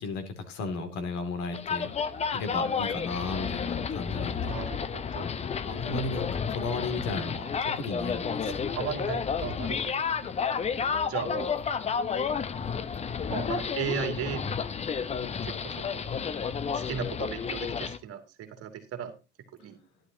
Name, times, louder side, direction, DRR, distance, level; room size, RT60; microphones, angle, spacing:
voice 1, 0.0-1.9 2.3-4.6 5.6-8.5 9.4-9.5, left 3 dB, 50° left, 7 dB, 2.7 m, -35 dB
sound 1, 1.5-18.0, left 6 dB, 20° left, 0.7 m, -31 dB
voice 2, 4.3-5.3 8.4-10.3 11.1-11.5 13.3-14.4 15.4-16.1 16.7-19.1 19.5-19.8, right 8 dB, 40° right, 6 dB, 2.4 m, -36 dB
12.0 x 11.5 x 2.9 m, 0.29 s
hypercardioid pair, 85°, 35 cm